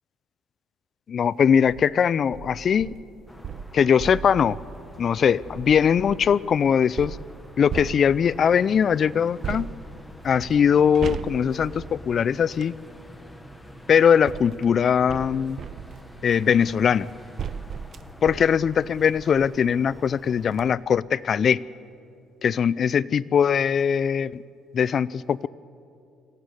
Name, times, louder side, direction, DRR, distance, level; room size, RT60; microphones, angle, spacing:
voice 1, 1.1-2.9 3.7-4.6 5.0-7.2 7.6-9.7 10.2-12.7 13.9-15.6 16.2-17.1 18.2-21.6 22.4-24.3 24.7-25.5, left 7 dB, 45° left, 19 dB, 0.4 m, -21 dB
sound 1, 1.5-1.8 2.3-6.4 7.0-8.5 9.4-12.8 13.7-19.7 20.1-20.2 20.5-20.6, right 7 dB, 45° right, 0.7 m, -38 dB
sound 2, 3.3-20.8, left 1 dB, 5° left, 1.5 m, -46 dB
23.0 x 15.0 x 9.7 m, 2.6 s
cardioid pair, 125°, 0 cm